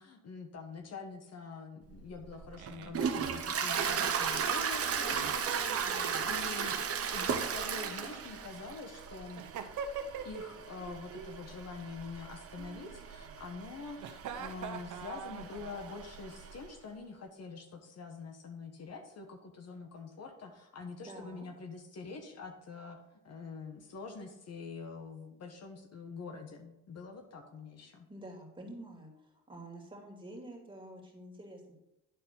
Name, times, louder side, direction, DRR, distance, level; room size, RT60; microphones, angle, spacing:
voice 1, 0.0-6.8 7.1-9.4 10.2-28.1, left 4 dB, 55° left, 4 dB, 1.3 m, -46 dB
Toilet flush, 1.9-16.6, right 6 dB, 50° right, 1.1 m, -36 dB
Giggle, 2.6-4.4 5.1-6.7 7.7-8.7 9.4-10.6 10.8-11.4 12.6-13.3 14.0-16.1, right 7 dB, 75° right, 0.9 m, -44 dB
voice 2, 5.8-6.3 21.0-21.5 28.1-31.7, right 1 dB, 15° right, 0 dB, 2.7 m, -48 dB
10.5 x 4.4 x 5.4 m, 0.88 s
cardioid pair, 90°, 30 cm